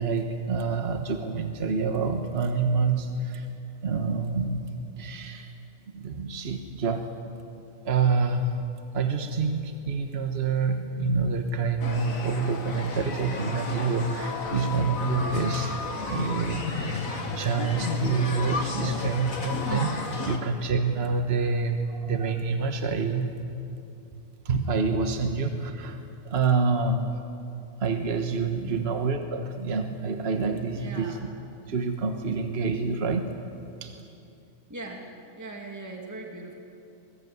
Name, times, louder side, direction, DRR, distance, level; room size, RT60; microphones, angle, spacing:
voice 1, 0.0-3.5 3.8-5.5 5.9-7.1 7.8-8.7 8.9-15.7 16.0-23.3 24.4-27.2 27.8-31.2 31.7-33.3 33.8-33.9, right 4 dB, 50° right, 5 dB, 1.6 m, -27 dB
sound 1, 11.8-20.4, left 3 dB, 75° left, 2.4 m, -32 dB
voice 2, 28.6-29.0 30.7-31.2 34.7-35.1 35.4-36.5, right 2 dB, 10° right, 0 dB, 2.4 m, -40 dB
25.0 x 22.0 x 9.6 m, 2.6 s
omnidirectional pair, 1.4 m